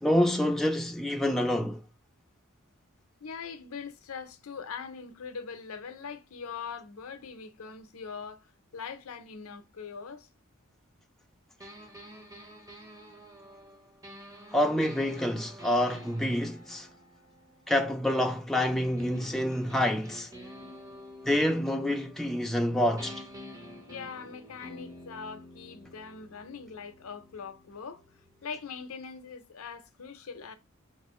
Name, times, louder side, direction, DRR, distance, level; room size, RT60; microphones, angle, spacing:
voice 1, 0.0-1.8 14.5-16.9 17.7-20.3 21.3-23.2, left 1 dB, ahead, 0.4 m, -27 dB
voice 2, 3.2-10.3 23.9-28.0 28.4-30.6, left 5 dB, 75° left, 0.6 m, -42 dB
sound 1, 11.6-18.1 18.6-22.7 23.0-28.7, left 1 dB, 15° right, 0.8 m, -49 dB
5.3 x 2.4 x 3.0 m
head